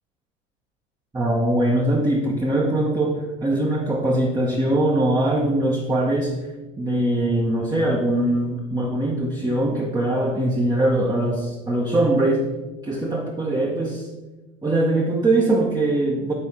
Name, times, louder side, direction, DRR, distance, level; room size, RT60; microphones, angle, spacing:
voice 1, 1.1-6.3 6.8-12.5 12.8-14.1 14.6-16.3, right 1 dB, 10° right, -1 dB, 0.8 m, -22 dB
8.8 x 4.6 x 4.1 m, 1.1 s
figure-of-eight pair, 65°, 38 cm